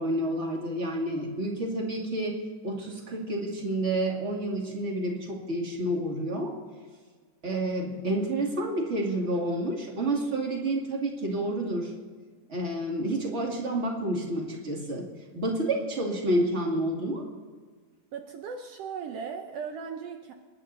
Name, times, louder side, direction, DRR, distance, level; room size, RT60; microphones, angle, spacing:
voice 1, 0.0-2.4 2.6-6.6 7.4-11.9 12.5-17.3, right 1 dB, 25° right, 0 dB, 1.9 m, -29 dB
voice 2, 18.1-20.3, right 6 dB, 85° right, 5 dB, 1.3 m, -37 dB
25.5 x 11.0 x 4.0 m, 1.5 s
omnidirectional pair, 4.0 m